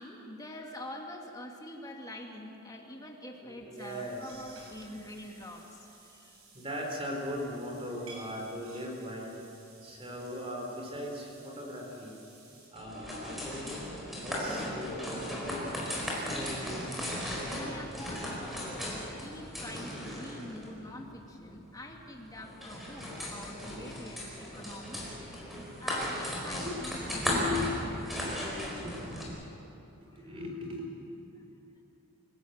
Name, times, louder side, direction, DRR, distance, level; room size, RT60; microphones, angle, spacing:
voice 1, 0.0-6.4 17.6-25.0 25.8-27.7 28.1-28.6 30.1-30.4, left 1 dB, 15° left, 1 dB, 2.2 m, -45 dB
voice 2, 3.4-4.9 6.5-9.5 9.8-12.2 12.7-17.1 26.5-28.5 28.8-29.4 30.2-30.9, left 1 dB, 25° right, 1 dB, 3.9 m, -39 dB
sound 1, 3.7-12.7, right 3 dB, 75° right, 7.0 m, -56 dB
sound 2, 12.8-29.2, left 1 dB, ahead, 4.7 m, -37 dB
27.5 x 16.5 x 8.1 m, 3.0 s
head